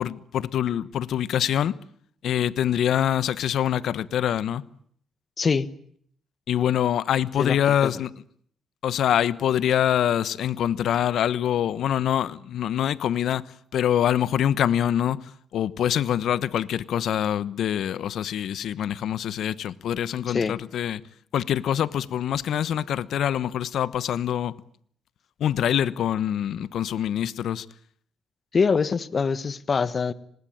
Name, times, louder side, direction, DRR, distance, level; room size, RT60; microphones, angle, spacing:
voice 1, 0.0-1.7 2.2-4.6 6.5-8.1 8.8-13.5 13.7-15.2 15.5-21.0 21.3-24.6 25.4-27.7, left 10 dB, 70° left, 1.1 m, -25 dB
voice 2, 5.4-5.7 7.4-7.9 20.3-20.6 28.5-30.1, left 5 dB, 40° left, 1.4 m, -24 dB
26.0 x 20.0 x 8.8 m
cardioid pair, 90°, 0 cm